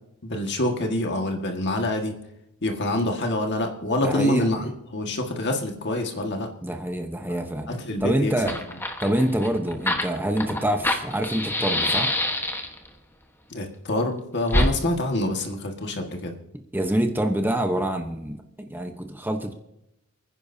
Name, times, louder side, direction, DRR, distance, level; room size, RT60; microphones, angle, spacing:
voice 1, 0.2-2.2 2.6-6.5 7.3-8.5 13.5-16.4, left 1 dB, 50° left, 3 dB, 1.8 m, -26 dB
voice 2, 4.0-4.5 6.6-7.7 8.0-8.5 9.0-12.2 16.7-19.5, right 1 dB, 10° right, 5 dB, 0.9 m, -26 dB
Fire, 8.0-8.1 8.3-12.9 14.5-14.7, left 1 dB, 10° left, 1.3 m, -25 dB
29.0 x 10.0 x 2.8 m, 0.87 s
head